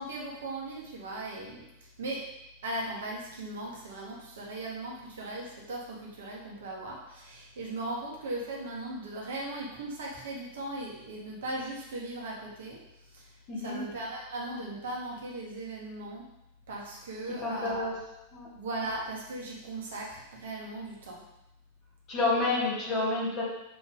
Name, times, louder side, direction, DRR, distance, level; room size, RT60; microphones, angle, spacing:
voice 1, 0.0-1.6 2.0-2.2 2.6-12.8 13.1-13.2 13.6-16.2 16.7-17.9 18.5-21.2, right 2 dB, 60° right, -2 dB, 1.6 m, -38 dB
voice 2, 13.5-13.8 17.4-18.0 18.3-18.5 22.1-23.4, left 3 dB, 35° left, -5 dB, 2.4 m, -29 dB
6.7 x 4.3 x 3.6 m, 0.87 s
figure-of-eight pair, 90°, 0 cm